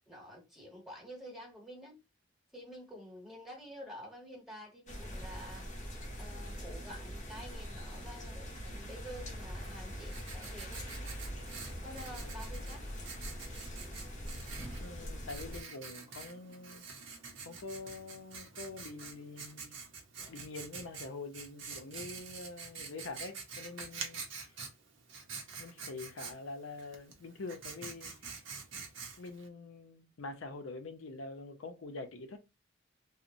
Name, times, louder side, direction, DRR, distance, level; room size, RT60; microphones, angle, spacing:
voice 1, 0.0-2.0 2.5-5.9 6.2-10.8 11.8-12.9, equal, ahead, 1.0 m, -49 dB
sound 1, 4.9-15.6, equal, 40° left, 0.7 m, -43 dB
Writing, 9.7-29.5, right 5 dB, 70° right, 0.6 m, -47 dB
voice 2, 14.8-16.9 17.4-19.7 20.3-24.5 25.6-28.1 29.2-32.4, left 3 dB, 90° left, 0.6 m, -45 dB
2.8 x 2.1 x 2.5 m
head